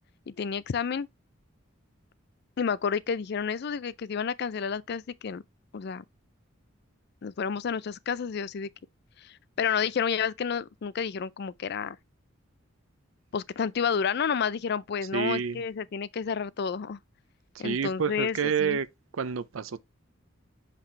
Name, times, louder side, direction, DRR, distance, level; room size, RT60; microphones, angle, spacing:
voice 1, 0.3-1.1 2.6-5.4 5.7-6.0 7.2-8.7 9.2-12.0 13.3-17.0 17.6-18.8, left 6 dB, 55° left, 0.4 m, -30 dB
voice 2, 15.1-15.6 17.5-18.9 19.1-19.8, right 6 dB, 85° right, 0.6 m, -28 dB
6.0 x 5.9 x 3.2 m
head